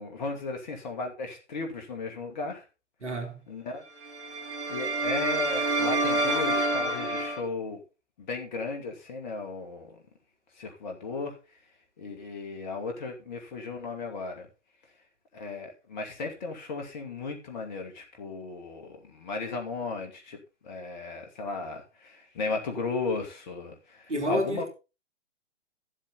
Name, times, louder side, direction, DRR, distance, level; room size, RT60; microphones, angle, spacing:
voice 1, 0.0-2.6 3.5-3.8 4.7-7.8 8.2-10.0 10.6-11.3 12.0-14.5 15.3-20.4 20.6-24.7, left 3 dB, 40° left, 2.5 m, -35 dB
voice 2, 3.0-3.4 24.1-24.7, equal, 75° right, 2.9 m, -30 dB
sound 1, 4.0-7.4, right 2 dB, 50° right, 3.7 m, -28 dB
12.5 x 7.6 x 4.1 m
figure-of-eight pair, 125°, 35 cm